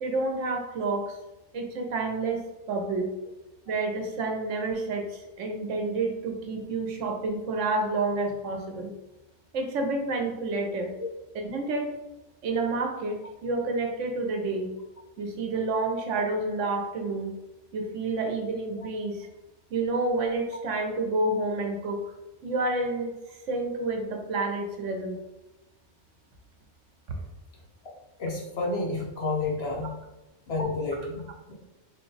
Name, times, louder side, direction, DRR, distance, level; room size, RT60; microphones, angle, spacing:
voice 1, 0.0-1.2 1.5-3.1 3.7-8.9 9.5-10.9 11.4-11.9 12.4-14.7 15.2-17.3 17.7-19.3 19.7-22.0 22.4-25.2 27.2-27.3, right 3 dB, 70° right, 3 dB, 1.0 m, -29 dB
voice 2, 28.2-30.0 30.5-31.5, left 3 dB, 55° left, -1 dB, 0.9 m, -30 dB
3.7 x 2.3 x 3.8 m, 1.0 s
omnidirectional pair, 1.4 m